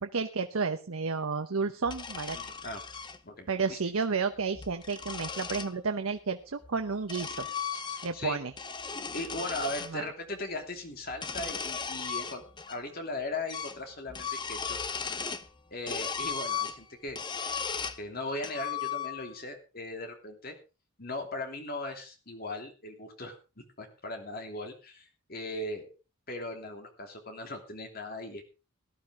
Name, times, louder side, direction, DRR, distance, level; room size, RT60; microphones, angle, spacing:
voice 1, 0.0-2.4 3.5-7.5 8.0-8.5 9.9-10.1, right 4 dB, 90° right, 7 dB, 0.9 m, -31 dB
sound 1, 1.8-3.2 4.4-5.7 6.6-8.3 8.5-9.9 11.1-12.8 13.0-13.1 13.5-13.8 14.1-15.5 15.9-18.0 18.4-19.4, left 6 dB, 20° left, 0.8 m, -36 dB
voice 2, 2.3-2.8 3.2-3.8 7.9-8.4 9.1-14.8 15.7-17.2 18.0-20.5 21.0-25.9 26.3-28.4, left 2 dB, 45° left, 4 dB, 2.9 m, -38 dB
18.0 x 11.5 x 3.7 m, 0.31 s
head